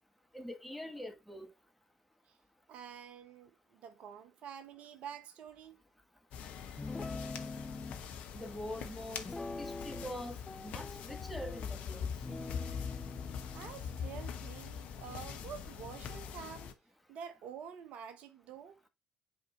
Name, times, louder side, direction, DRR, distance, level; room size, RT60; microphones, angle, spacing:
voice 1, 0.3-1.5 8.3-9.3 9.6-12.1, equal, ahead, 1.4 m, -44 dB
voice 2, 2.7-5.8 13.5-16.7 17.1-18.8, right 8 dB, 55° right, 0.8 m, -48 dB
sound 1, 6.3-16.7, left 7 dB, 55° left, 1.0 m, -43 dB
Guitar, 6.8-8.0 9.2-10.2 10.5-11.6 12.2-15.7, left 3 dB, 20° left, 0.4 m, -45 dB
9.0 x 4.7 x 2.9 m
figure-of-eight pair, 50°, 2 cm